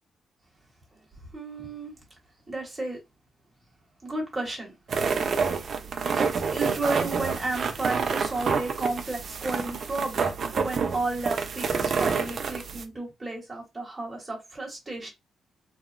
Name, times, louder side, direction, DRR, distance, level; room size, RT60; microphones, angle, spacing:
voice 1, 1.2-1.9 2.5-3.0 4.0-5.5 6.1-15.1, right 2 dB, 15° right, 1.1 m, -33 dB
sound 1, 4.9-12.8, right 5 dB, 50° right, 0.3 m, -28 dB
2.8 x 2.0 x 2.4 m
wide cardioid pair, 145°, 0 cm